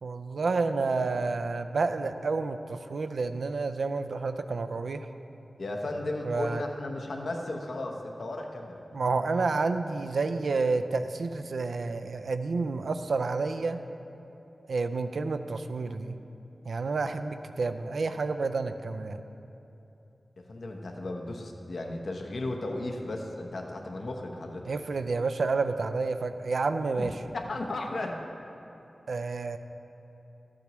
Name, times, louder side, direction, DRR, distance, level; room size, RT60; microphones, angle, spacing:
voice 1, 0.0-5.1 6.2-6.6 8.9-13.8 14.7-16.2 16.7-19.2 24.6-27.1 29.1-29.6, right 4 dB, 85° right, 8 dB, 0.4 m, -29 dB
voice 2, 5.6-8.8 20.5-24.7 27.0-28.2, left 2 dB, 80° left, 2 dB, 0.9 m, -35 dB
13.0 x 8.6 x 3.1 m, 2.9 s
wide cardioid pair, 60°, 0 cm